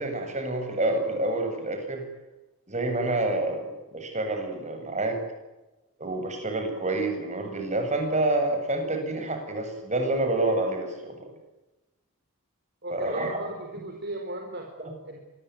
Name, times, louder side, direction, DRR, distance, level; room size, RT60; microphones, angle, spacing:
voice 1, 0.0-2.0 2.7-5.2 6.0-11.2 12.9-13.5 14.8-14.9, right 2 dB, 30° right, 5 dB, 7.9 m, -28 dB
voice 2, 12.8-14.7 15.0-15.2, right 1 dB, 45° right, 3 dB, 4.3 m, -37 dB
26.0 x 22.0 x 9.5 m, 1.0 s
head